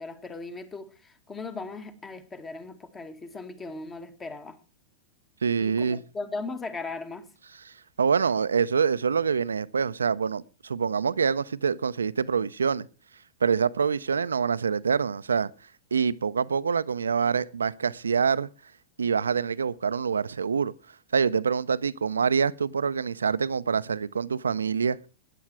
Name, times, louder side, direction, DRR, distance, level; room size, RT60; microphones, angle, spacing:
voice 1, 0.0-4.6 5.6-7.3, left 3 dB, 20° left, 1.9 m, -38 dB
voice 2, 5.4-6.0 7.7-12.9 13.4-15.5 15.9-18.5 19.0-20.7 21.1-25.0, right 6 dB, 90° right, 0.6 m, -25 dB
14.5 x 10.0 x 4.7 m
hypercardioid pair, 110°, 0 cm